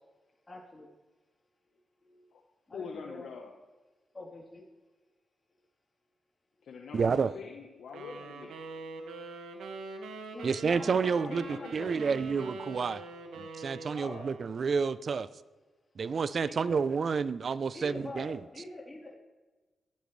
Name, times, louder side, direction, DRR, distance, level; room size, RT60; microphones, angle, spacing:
voice 1, 0.5-0.9 2.0-2.3 2.7-3.2 4.1-4.6 9.6-12.1 13.9-14.3 16.5-16.8 17.7-19.1, left 2 dB, 30° left, -3 dB, 3.7 m, -45 dB
voice 2, 2.7-3.5 6.6-8.5 11.2-12.2, left 5 dB, 80° left, 1 dB, 1.3 m, -44 dB
voice 3, 6.9-7.3 10.4-11.4 11.7-13.0 13.4-15.3 16.0-18.4, right 5 dB, 60° right, 16 dB, 0.6 m, -29 dB
sound 1, 7.9-14.9, right 3 dB, 85° right, 1.8 m, -44 dB
21.5 x 15.0 x 3.4 m, 1.2 s
supercardioid pair, 50°, 0 cm